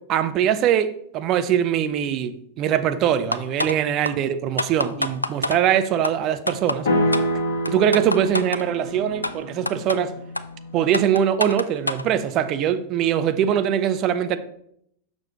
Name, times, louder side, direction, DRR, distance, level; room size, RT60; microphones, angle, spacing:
voice 1, 0.1-6.9 7.7-10.1 10.7-14.4, right 9 dB, 35° right, 0.5 m, -22 dB
sound 1, 3.3-3.8 4.0-4.1 4.6-5.6 6.0-6.1 6.5-6.8 7.1-7.3 7.7-8.6 9.2-9.3 9.7-10.0 10.4-10.5 10.9-12.0, left 1 dB, 85° left, 0.3 m, -26 dB
sound 2, 6.8-11.0, equal, 55° left, 1.4 m, -27 dB
6.5 x 6.1 x 2.9 m
figure-of-eight pair, 90°, 0 cm